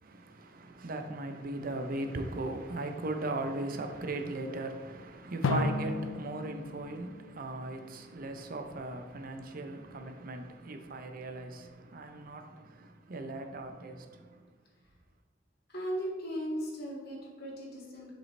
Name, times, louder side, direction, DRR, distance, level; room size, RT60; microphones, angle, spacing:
voice 1, 0.0-14.4, right 2 dB, 50° right, 0.6 m, -38 dB
Drum, 5.4-8.1, left 2 dB, 90° left, 0.5 m, -34 dB
voice 2, 15.7-18.1, equal, 55° left, 1.9 m, -37 dB
7.3 x 5.3 x 3.2 m
head